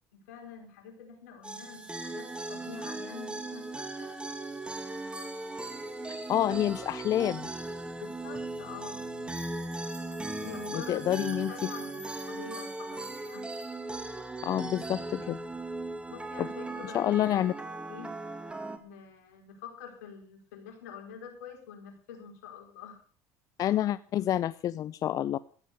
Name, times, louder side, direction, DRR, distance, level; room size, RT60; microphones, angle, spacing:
voice 1, 0.1-4.3 7.9-9.0 10.4-11.0 11.3-13.5 16.1-17.2 17.9-18.1 18.8-23.0, left 7 dB, 90° left, 4 dB, 4.7 m, -46 dB
sound 1, 1.4-18.8, right 2 dB, 15° right, 2.2 m, -38 dB
voice 2, 6.1-7.5 10.7-11.7 14.4-15.4 16.4-16.5 16.9-17.5 23.6-25.4, left 12 dB, 45° left, 17 dB, 0.5 m, -28 dB
14.5 x 9.3 x 6.9 m, 0.43 s
supercardioid pair, 90°, 8 cm